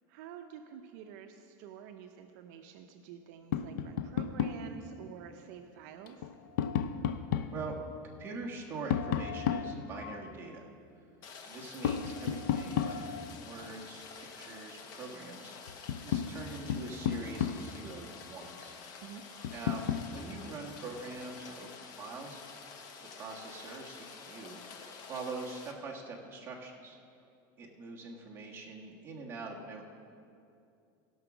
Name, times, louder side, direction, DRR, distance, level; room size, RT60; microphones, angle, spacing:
voice 1, 0.1-6.3 19.0-19.2, right 8 dB, 60° right, 5 dB, 0.6 m, -48 dB
Tap, 3.5-4.7 6.1-7.6 8.9-10.3 11.8-13.4 15.2-15.3 15.7-17.8 19.4-20.1, left 8 dB, 85° left, 0.5 m, -33 dB
voice 2, 8.0-10.7 11.4-13.0 13.4-18.7 19.5-22.7 23.1-27.0 27.6-29.8, right 3 dB, 20° right, -2 dB, 1.3 m, -44 dB
Rain, 11.2-25.7, left 5 dB, 40° left, 0.9 m, -49 dB
16.5 x 5.9 x 6.0 m, 2.6 s
supercardioid pair, 170°, 10 cm